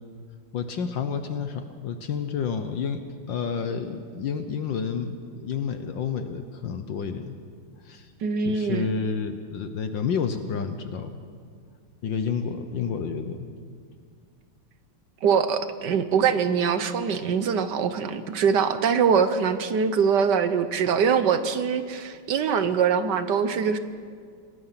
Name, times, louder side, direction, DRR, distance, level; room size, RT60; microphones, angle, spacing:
voice 1, 0.5-3.0 3.3-7.3 7.8-8.1 8.4-11.2 12.0-13.5, left 6 dB, 65° left, 8 dB, 1.5 m, -30 dB
voice 2, 8.2-8.9 15.2-23.8, right 6 dB, 60° right, 11 dB, 1.3 m, -23 dB
27.5 x 19.0 x 5.8 m, 2.1 s
omnidirectional pair, 2.4 m